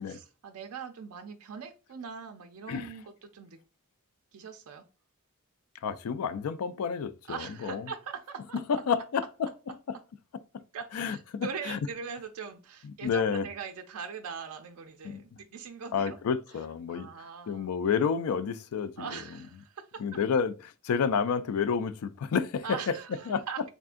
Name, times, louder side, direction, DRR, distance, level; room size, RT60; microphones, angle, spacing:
voice 1, 0.0-3.6 4.3-4.8 7.3-8.8 10.7-16.2 16.9-17.7 19.0-20.0 22.6-23.6, right 6 dB, 75° right, 0.4 m, -41 dB
voice 2, 5.8-7.8 8.7-9.2 9.7-10.0 10.5-10.6 10.9-11.8 13.0-13.5 15.0-15.2 15.9-17.1 17.5-19.1 20.0-22.6 23.3-23.4, left 6 dB, 75° left, 0.4 m, -30 dB
3.6 x 3.5 x 2.4 m
head